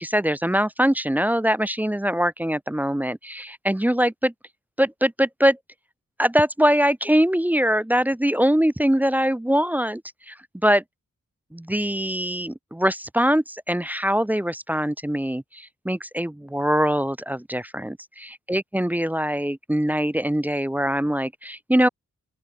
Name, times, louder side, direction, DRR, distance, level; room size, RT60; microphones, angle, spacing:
voice 1, 0.0-4.3 4.8-5.6 6.2-10.0 10.3-10.4 10.6-10.8 11.5-21.9, equal, 5° right, 0.3 m, -22 dB
open air
wide cardioid pair, 65°, 34 cm